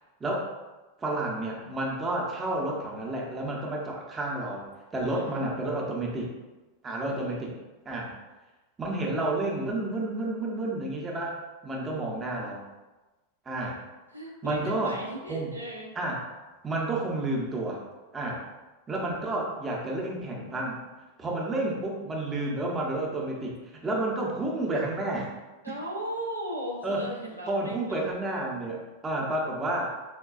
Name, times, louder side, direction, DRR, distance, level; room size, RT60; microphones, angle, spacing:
voice 1, 0.2-0.5 1.0-6.3 6.8-7.6 7.9-8.2 8.8-11.4 11.6-12.6 13.5-13.8 14.4-15.0 15.3-15.5 15.9-16.3 16.6-17.8 18.1-18.5 18.9-20.8 21.2-23.5 23.8-25.3 26.8-27.1 27.5-29.9, right 2 dB, 15° right, -2 dB, 0.7 m, -30 dB
voice 2, 7.0-7.4 14.1-15.9 25.6-28.0, equal, 85° right, -3 dB, 0.6 m, -37 dB
4.5 x 2.2 x 2.4 m, 1.1 s
figure-of-eight pair, 90°, 0 cm